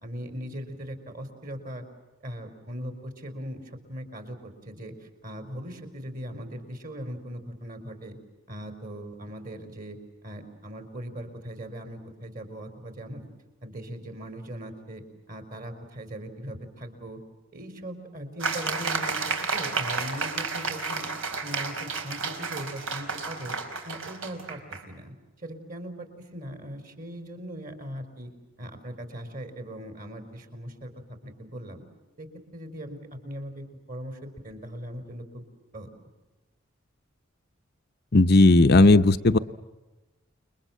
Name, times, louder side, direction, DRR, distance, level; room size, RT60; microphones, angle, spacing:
voice 1, 0.0-1.8 2.2-8.2 8.5-13.3 13.6-17.2 17.5-21.1 21.4-23.6 23.8-28.3 28.6-30.9 31.2-31.8 32.2-35.5 35.7-35.9, equal, 40° right, 8 dB, 4.4 m, -39 dB
sound 1, 18.4-24.8, right 4 dB, 75° right, 4.2 m, -31 dB
voice 2, 38.1-39.4, left 2 dB, 50° left, 8 dB, 0.8 m, -16 dB
29.5 x 22.5 x 7.5 m, 1.1 s
head